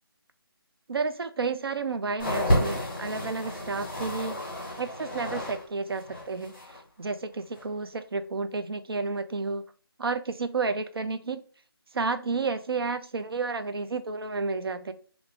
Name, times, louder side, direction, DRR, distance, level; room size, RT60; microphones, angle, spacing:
voice 1, 0.9-4.4 4.8-6.5 7.0-9.6 10.0-11.4 12.0-14.9, right 4 dB, 70° right, 10 dB, 0.4 m, -31 dB
sound 1, 2.2-5.6 5.9-6.8 7.5-7.6, equal, 25° left, 1.0 m, -30 dB
2.9 x 2.5 x 3.4 m, 0.42 s
figure-of-eight pair, 180°, 13 cm